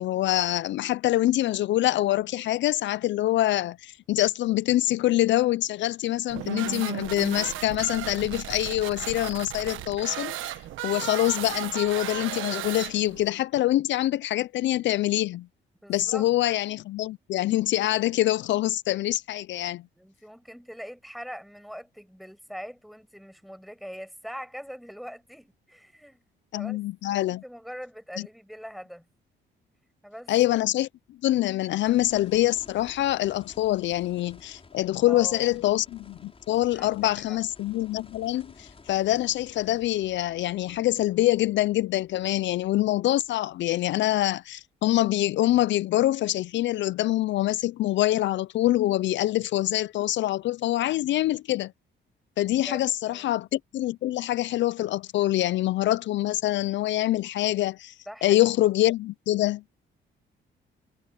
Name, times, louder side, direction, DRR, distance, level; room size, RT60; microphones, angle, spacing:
voice 1, 0.0-10.5 10.8-15.5 15.9-19.8 26.5-27.4 30.3-30.9 31.2-51.7 52.4-57.9 58.2-59.6, left 15 dB, 70° left, 0.4 m, -25 dB
sound 1, 6.3-13.3, right 13 dB, 85° right, 1.2 m, -35 dB
voice 2, 15.8-16.3 20.0-26.2 26.5-26.8 27.2-29.1 30.0-30.3 35.0-35.6 36.7-37.0 37.3-37.4 52.6-53.3 58.1-58.4, equal, ahead, 6.9 m, -42 dB
sound 2, 31.9-44.2 44.6-44.7 48.1-48.2, left 4 dB, 30° left, 6.1 m, -53 dB
cardioid pair, 90°, 20 cm